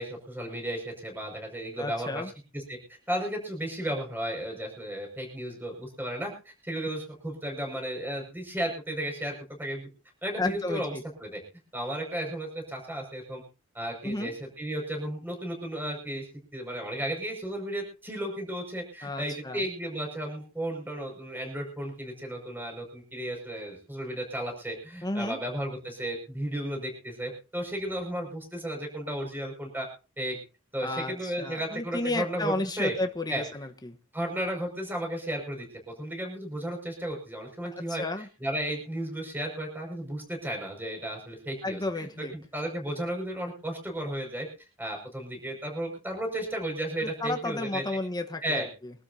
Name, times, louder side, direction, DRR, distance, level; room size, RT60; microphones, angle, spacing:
voice 1, 0.0-2.2 2.5-2.8 3.1-6.3 6.6-9.9 10.2-10.9 11.2-11.4 11.7-13.4 13.7-16.3 16.5-29.9 30.2-30.4 30.7-32.9 33.3-33.4 34.1-38.0 38.4-44.5 44.8-47.8 48.4-48.7, right 1 dB, 10° right, 1 dB, 5.8 m, -34 dB
voice 2, 1.8-2.3 10.4-11.0 14.0-14.3 19.0-19.6 25.0-25.4 30.8-34.0 37.9-38.3 41.6-42.3 47.0-48.9, left 2 dB, 20° left, 5 dB, 1.2 m, -32 dB
24.5 x 12.5 x 2.8 m, 0.33 s
head